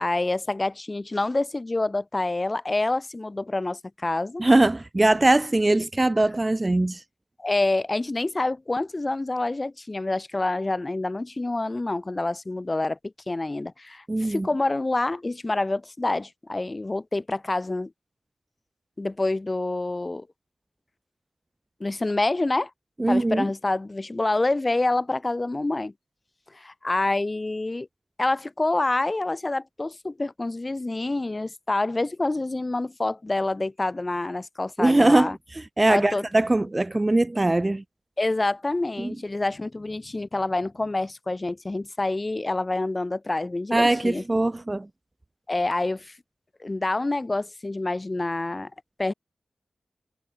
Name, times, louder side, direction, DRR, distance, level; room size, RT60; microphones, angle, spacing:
voice 1, 0.0-4.4 7.4-17.9 19.0-20.3 21.8-22.7 23.1-25.9 26.5-27.9 28.2-35.4 35.9-36.2 38.2-44.2 45.5-46.2 46.6-48.7 49.0-49.1, left 2 dB, 25° left, 1.8 m, -27 dB
voice 2, 4.4-7.0 14.1-14.5 23.0-23.4 34.8-37.8 39.0-39.2 43.7-44.9, right 2 dB, 20° right, 0.6 m, -21 dB
wide cardioid pair, 95°, 0 cm